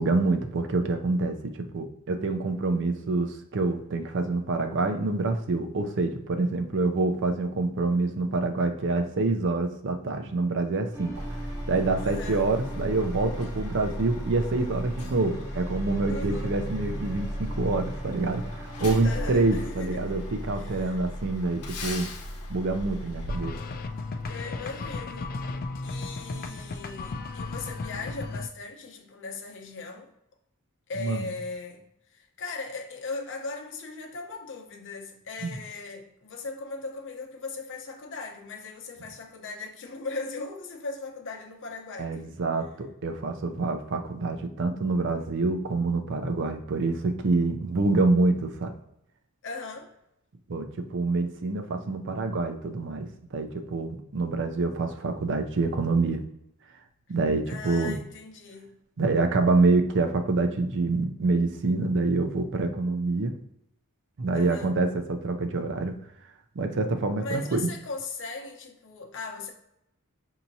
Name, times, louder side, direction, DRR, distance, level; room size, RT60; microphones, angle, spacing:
voice 1, 0.0-11.2 11.7-22.1 22.5-23.5 31.0-31.2 35.4-35.5 42.0-48.8 50.5-56.2 57.1-58.0 59.0-63.3 64.2-66.0 66.6-67.7, right 3 dB, 55° right, 0.5 m, -26 dB
sound 1, 10.9-19.7, right 1 dB, 10° right, 0.7 m, -40 dB
Truck, 11.1-24.3, equal, 85° left, 0.9 m, -36 dB
voice 2, 12.0-12.4 16.1-16.6 19.0-20.1 20.5-21.0 24.2-25.4 25.8-30.1 30.9-42.3 49.4-49.9 57.5-58.7 64.3-64.7 67.2-69.5, left 3 dB, 55° left, 0.8 m, -38 dB
sound 2, 23.3-28.5, left 3 dB, 40° left, 0.3 m, -35 dB
5.7 x 2.8 x 2.7 m
head